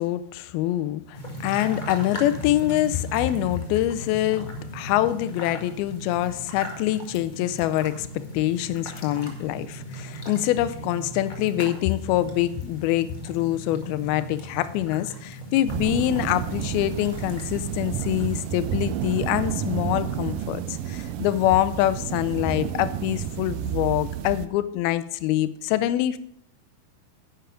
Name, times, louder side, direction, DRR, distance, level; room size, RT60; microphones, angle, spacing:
voice 1, 0.0-26.2, left 14 dB, 80° left, 12 dB, 2.5 m, -25 dB
sound 1, 1.1-18.4, right 1 dB, 55° left, 0.5 m, -38 dB
sound 2, 15.7-24.5, right 10 dB, 80° right, 1.9 m, -30 dB
10.5 x 9.0 x 5.1 m, 0.69 s
omnidirectional pair, 4.5 m